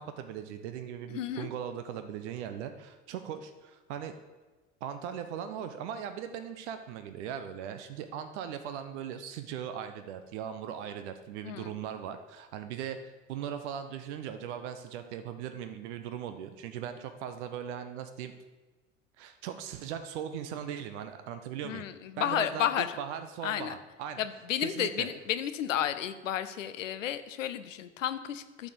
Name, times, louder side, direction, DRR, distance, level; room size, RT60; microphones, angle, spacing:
voice 1, 0.0-4.1 4.8-18.3 19.2-21.8 22.2-24.2 24.6-25.1, right 9 dB, 60° right, 9 dB, 0.8 m, -39 dB
voice 2, 1.1-1.5 11.4-11.8 21.6-22.9 23.4-23.8 24.2-28.7, left 10 dB, 70° left, 11 dB, 0.7 m, -32 dB
11.5 x 4.2 x 6.8 m, 1.2 s
figure-of-eight pair, 70°, 39 cm